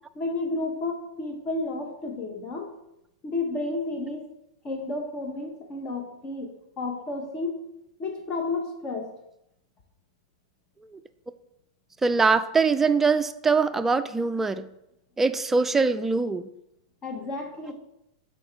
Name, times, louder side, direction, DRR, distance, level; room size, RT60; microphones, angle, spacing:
voice 1, 0.1-2.7 3.2-4.3 4.6-7.6 8.0-9.1 17.0-17.7, left 2 dB, 30° left, 2 dB, 0.9 m, -31 dB
voice 2, 12.0-14.6 15.2-16.5, right 4 dB, 10° right, 10 dB, 0.3 m, -23 dB
6.9 x 4.3 x 3.1 m, 0.84 s
hypercardioid pair, 110°, 3 cm